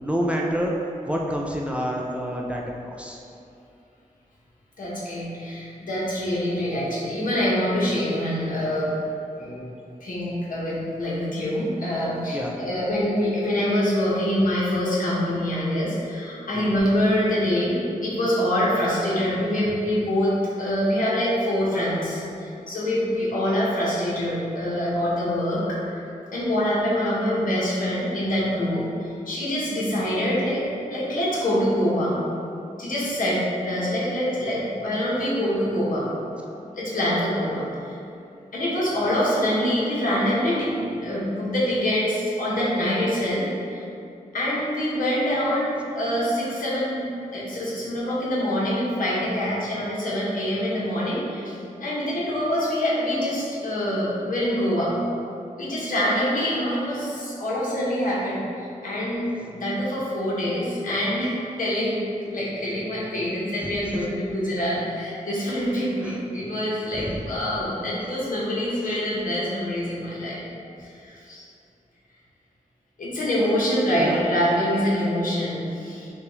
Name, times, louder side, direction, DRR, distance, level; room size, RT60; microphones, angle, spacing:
voice 1, 0.0-0.8 1.1-3.2 12.3-12.5 16.5-16.7 63.6-63.7 66.0-66.2 66.9-67.2 68.8-69.0 74.0-74.2, equal, 10° right, -2 dB, 0.4 m, -28 dB
voice 2, 4.8-8.9 9.3-9.7 10.0-26.0 26.3-30.6 30.9-32.1 32.8-36.1 36.7-38.0 38.5-43.8 44.3-47.1 47.3-54.9 55.6-62.0 62.3-70.5 70.8-71.4 73.0-76.1, equal, 75° left, -7 dB, 1.2 m, -25 dB
5.8 x 2.4 x 3.1 m, 2.6 s
wide cardioid pair, 100°, 14 cm